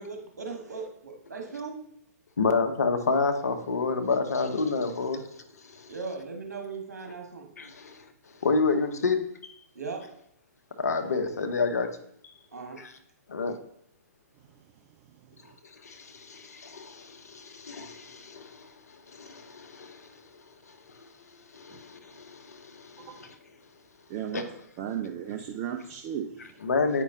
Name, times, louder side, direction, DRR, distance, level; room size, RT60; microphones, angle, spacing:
voice 1, 0.0-1.8 5.9-7.5 9.7-10.0 12.5-12.8, right 4 dB, 70° right, 2 dB, 1.4 m, -38 dB
voice 2, 2.4-5.3 5.6-5.9 7.6-8.1 8.4-9.5 10.8-11.9 12.8-12.9 13.3-13.5 15.6-20.2 20.7-21.1 21.5-23.3 24.3-24.4 26.6-27.0, left 4 dB, 65° left, 6 dB, 0.8 m, -29 dB
voice 3, 23.0-23.3 24.1-24.4 24.8-26.6, right 9 dB, 25° right, 4 dB, 0.4 m, -35 dB
8.2 x 5.2 x 2.7 m, 0.72 s
figure-of-eight pair, 120°, 9 cm